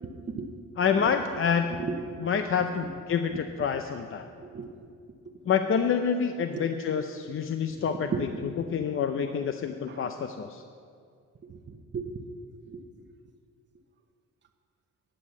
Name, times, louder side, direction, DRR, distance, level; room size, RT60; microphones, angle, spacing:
voice 1, 0.0-0.6 1.0-1.1 1.7-2.2 3.3-3.4 4.4-4.7 6.5-6.7 7.7-8.2 9.9-10.0 11.4-12.1 12.7-12.8, right 5 dB, 35° right, 2 dB, 1.0 m, -36 dB
voice 2, 0.8-1.7 2.2-4.3 5.5-8.3 8.7-10.6, left 7 dB, 45° left, 7 dB, 0.6 m, -27 dB
10.5 x 7.6 x 8.2 m, 2.2 s
cardioid pair, 90°, 30 cm